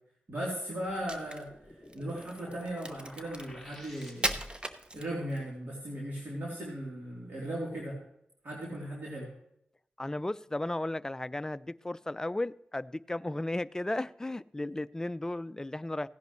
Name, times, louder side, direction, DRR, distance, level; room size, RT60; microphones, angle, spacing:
voice 1, 0.3-4.3 4.9-8.0 8.4-9.3, right 1 dB, 60° right, 3.3 m, -37 dB
Crack, 0.9-5.5, right 1 dB, 25° right, 0.9 m, -38 dB
sound 1, 1.1-4.7, left 1 dB, ahead, 2.3 m, -52 dB
voice 2, 10.0-16.1, left 1 dB, 15° left, 0.3 m, -35 dB
16.5 x 10.5 x 3.1 m
cardioid pair, 65°, 4 cm